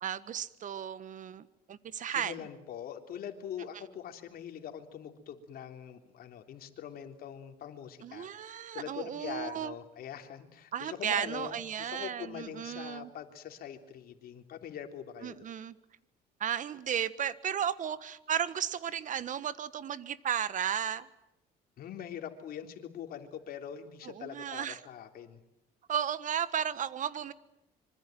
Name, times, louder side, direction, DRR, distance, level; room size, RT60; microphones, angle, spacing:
voice 1, 0.0-2.4 8.0-9.7 10.7-13.1 15.2-15.8 16.4-21.1 24.0-24.8 25.9-27.3, right 9 dB, 50° right, 15 dB, 1.5 m, -34 dB
voice 2, 2.1-15.4 21.8-25.4, left 9 dB, 60° left, 5 dB, 3.6 m, -43 dB
25.5 x 25.0 x 9.3 m, 0.84 s
cardioid pair, 110°, 17 cm